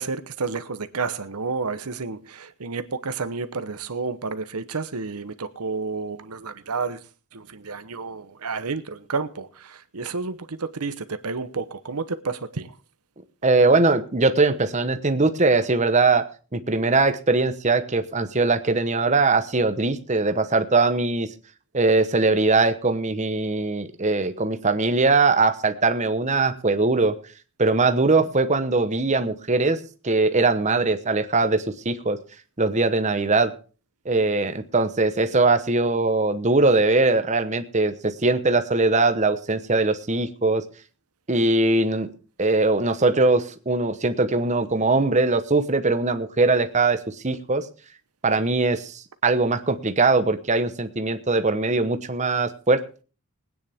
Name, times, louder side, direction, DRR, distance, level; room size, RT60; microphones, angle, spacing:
voice 1, 0.0-7.0 7.3-12.7, right 4 dB, 90° right, 1.0 m, -30 dB
voice 2, 13.4-16.2 16.5-21.3 21.7-27.1 27.6-29.8 30.0-32.2 32.6-33.5 34.0-40.6 41.3-42.1 42.4-47.6 48.2-52.8, right 3 dB, 30° right, 1.0 m, -21 dB
20.5 x 9.5 x 3.6 m
head